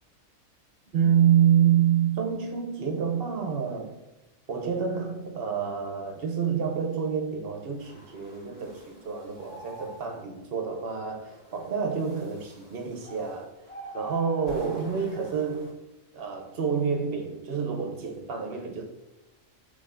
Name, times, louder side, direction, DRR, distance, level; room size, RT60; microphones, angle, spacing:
voice 1, 0.9-4.0 4.5-13.5 13.9-15.8 16.1-18.8, right 8 dB, 55° right, 0.8 m, -27 dB
sound 1, 7.6-10.2 10.8-15.7, equal, 40° left, 1.8 m, -51 dB
sound 2, 9.3-10.2 13.0-13.2 13.7-14.5, right 2 dB, 25° left, 1.5 m, -42 dB
5.4 x 3.5 x 2.5 m
omnidirectional pair, 1.4 m